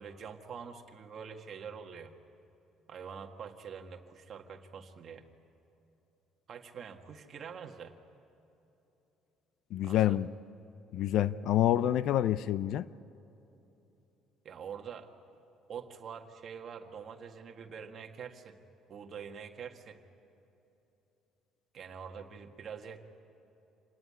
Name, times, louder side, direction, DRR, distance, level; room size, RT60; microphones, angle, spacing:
voice 1, 0.0-2.1 2.9-5.3 6.5-8.0 9.8-10.2 14.5-15.1 15.7-18.6 18.9-20.0 21.7-23.0, right 7 dB, 35° right, 4 dB, 1.7 m, -45 dB
voice 2, 9.7-10.3 10.9-12.9, left 12 dB, 60° left, 17 dB, 0.5 m, -27 dB
27.0 x 18.5 x 9.7 m, 3.0 s
cardioid pair, 160°, 0 cm